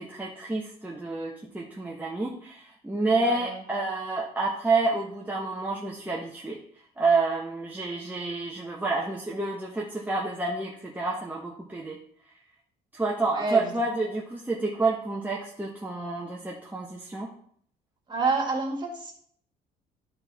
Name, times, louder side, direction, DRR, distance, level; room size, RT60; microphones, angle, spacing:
voice 1, 0.0-6.6 7.0-12.0 12.9-17.3, right 3 dB, 10° right, -3 dB, 1.0 m, -29 dB
voice 2, 3.2-3.6 13.3-13.7 18.1-19.1, right 3 dB, 25° right, 0 dB, 2.2 m, -28 dB
10.5 x 4.3 x 3.5 m, 0.63 s
cardioid pair, 110°, 17 cm